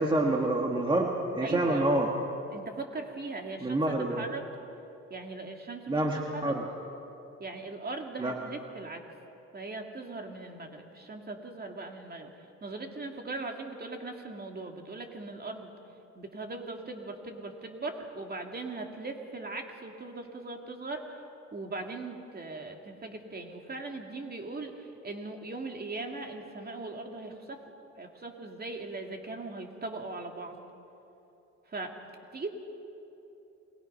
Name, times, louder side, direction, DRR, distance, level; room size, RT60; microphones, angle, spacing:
voice 1, 0.0-2.1 3.6-4.2 5.9-6.6 8.2-8.3, right 1 dB, 15° right, 1 dB, 1.9 m, -27 dB
voice 2, 1.4-1.9 2.5-4.5 5.1-6.6 7.4-9.1 9.5-15.7 16.1-21.2 21.5-27.6 28.0-30.6 31.7-32.0 32.3-32.5, right 3 dB, 30° right, 3 dB, 2.5 m, -39 dB
28.0 x 20.5 x 5.7 m, 2.9 s
cardioid pair, 90°, 30 cm